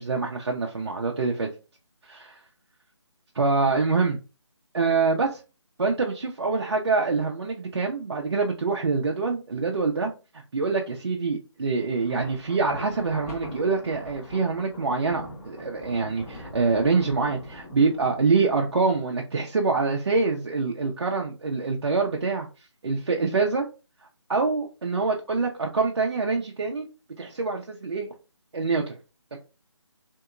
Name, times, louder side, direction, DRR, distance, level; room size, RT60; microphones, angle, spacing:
voice 1, 0.0-1.5 2.0-2.4 3.3-4.2 4.7-5.4 5.8-22.5 22.8-23.7 24.3-26.8 27.2-28.1 28.5-28.9 29.3-29.4, right 4 dB, 60° right, 0 dB, 0.5 m, -25 dB
Thunder, 11.9-19.2, left 1 dB, 30° left, 1.2 m, -42 dB
2.9 x 2.7 x 2.3 m, 0.31 s
figure-of-eight pair, 165°, 15 cm